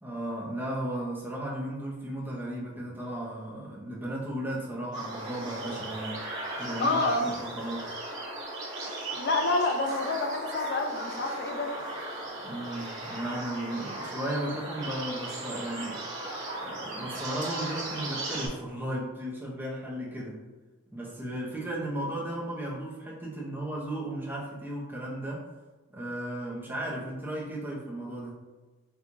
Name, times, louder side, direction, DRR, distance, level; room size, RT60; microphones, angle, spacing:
voice 1, 0.0-6.3 6.6-7.0 7.2-8.0 12.4-16.1 16.6-20.5 20.9-25.5 25.9-28.4, right 1 dB, 10° right, -5 dB, 0.6 m, -35 dB
sound 1, 4.9-18.5, right 2 dB, 55° right, 1.3 m, -37 dB
voice 2, 6.8-7.4 9.2-11.7, left 2 dB, 50° left, 4 dB, 0.4 m, -28 dB
4.5 x 2.3 x 2.6 m, 1.2 s
head